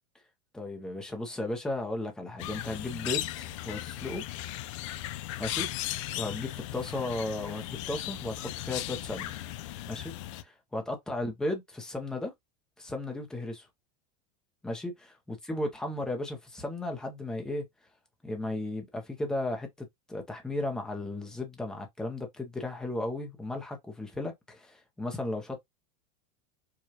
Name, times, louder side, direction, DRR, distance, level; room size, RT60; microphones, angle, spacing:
voice 1, 0.5-4.2 5.4-9.3 9.9-12.3 12.8-13.7 14.6-15.2 15.5-17.6 18.2-19.7 20.1-25.6, left 2 dB, 5° left, 0.6 m, -35 dB
sound 1, 2.4-10.4, left 14 dB, 55° left, 0.4 m, -37 dB
4.8 x 2.3 x 2.8 m
supercardioid pair, 170°, 19 cm